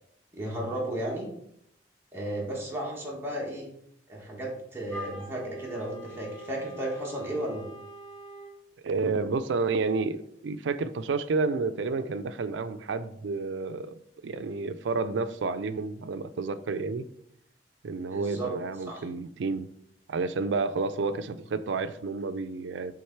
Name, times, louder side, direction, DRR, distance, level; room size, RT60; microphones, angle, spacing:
voice 1, 0.3-1.3 2.1-3.7 4.1-7.7 18.1-18.5 18.8-19.1, right 1 dB, 15° right, 1.6 m, -34 dB
Wind instrument woodwind instrument, 4.9-8.6, equal, 5° left, 1.4 m, -44 dB
voice 2, 8.8-17.1 17.8-19.7 20.1-22.9, right 4 dB, 85° right, 0.4 m, -30 dB
6.3 x 3.6 x 4.5 m
head